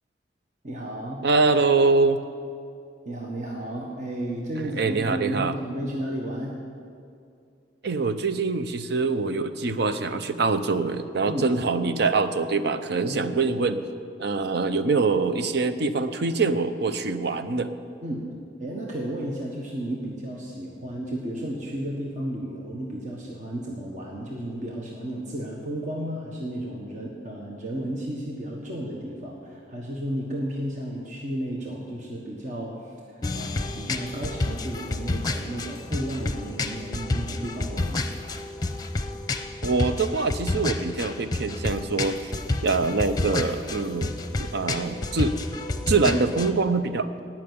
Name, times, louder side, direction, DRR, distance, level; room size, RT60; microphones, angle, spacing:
voice 1, 0.6-1.3 3.0-6.6 11.3-11.6 13.0-13.6 18.0-18.3 18.6-38.1, right 1 dB, 45° right, -2 dB, 1.4 m, -33 dB
voice 2, 1.2-2.2 4.6-5.5 7.8-13.8 14.2-17.7 39.6-42.3 42.6-44.1 44.4-45.4 45.8-47.1, right 3 dB, 65° right, 10 dB, 0.7 m, -24 dB
sound 1, 33.2-46.5, left 2 dB, 25° left, 0.7 m, -30 dB
17.0 x 6.0 x 9.5 m, 2.4 s
head